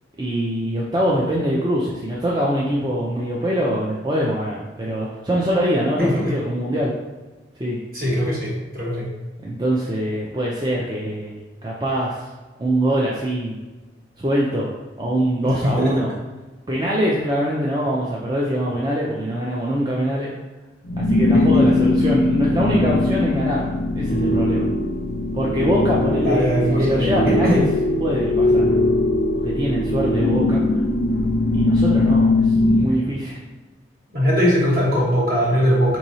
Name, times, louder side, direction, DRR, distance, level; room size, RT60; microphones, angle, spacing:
voice 1, 0.2-6.9 7.6-7.8 9.4-12.3 12.6-13.6 14.2-14.7 15.0-16.1 16.7-20.3 21.0-23.7 24.0-24.7 25.3-27.6 28.0-28.7 29.4-30.6 31.6-33.4, equal, 25° right, -5 dB, 0.4 m, -23 dB
voice 2, 6.0-6.3 7.9-9.1 15.4-15.9 21.3-21.5 26.2-27.1 27.4-27.6 34.1-36.0, equal, 50° right, -5 dB, 1.3 m, -20 dB
sound 1, 20.8-32.9, left 2 dB, 65° left, 0.4 m, -20 dB
4.5 x 3.1 x 2.7 m, 1.2 s
head